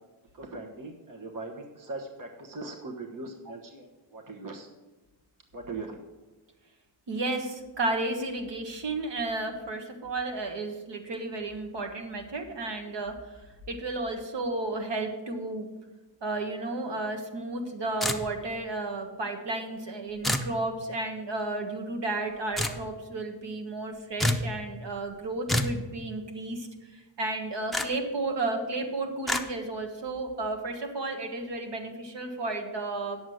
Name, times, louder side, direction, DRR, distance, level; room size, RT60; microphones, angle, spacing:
voice 1, 0.3-4.7 5.5-6.0, right 3 dB, 45° right, 3 dB, 1.3 m, -40 dB
voice 2, 7.1-13.4 13.7-15.7 16.2-26.7 26.9-33.2, right 2 dB, 75° right, 4 dB, 1.5 m, -33 dB
sound 1, 18.0-18.6 20.2-20.5 22.6-22.8 24.2-24.5 25.5-25.8 27.7-27.9 29.3-29.4, left 1 dB, ahead, 0.6 m, -27 dB
9.5 x 7.2 x 6.4 m, 1.2 s
wide cardioid pair, 165°, 43 cm